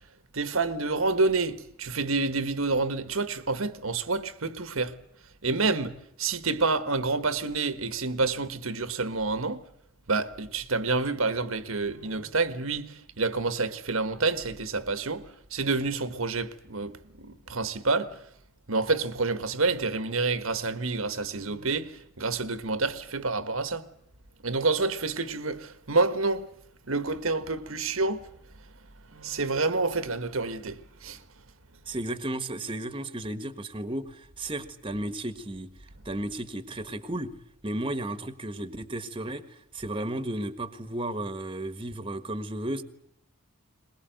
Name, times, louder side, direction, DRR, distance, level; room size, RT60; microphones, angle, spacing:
voice 1, 0.3-4.9 5.4-9.6 10.1-15.2 15.5-16.9 17.2-18.2 18.7-23.9 24.4-26.5 26.9-28.2 29.1-31.2, right 3 dB, 75° right, 1.5 m, -28 dB
voice 2, 31.9-35.7 36.0-37.3 37.6-42.8, right 1 dB, 25° right, 1.5 m, -34 dB
22.5 x 21.0 x 9.2 m
head